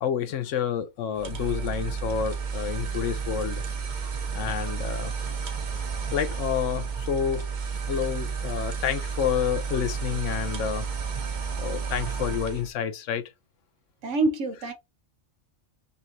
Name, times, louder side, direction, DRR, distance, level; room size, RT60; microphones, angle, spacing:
voice 1, 0.0-3.6 4.0-5.1 6.1-7.5 7.9-10.9 11.5-13.3, left 8 dB, 85° left, 1.0 m, -29 dB
sound 1, 1.2-12.7, right 5 dB, 45° right, 0.8 m, -31 dB
voice 2, 14.0-14.7, right 2 dB, 80° right, 1.3 m, -25 dB
5.4 x 3.0 x 2.6 m
omnidirectional pair, 1.2 m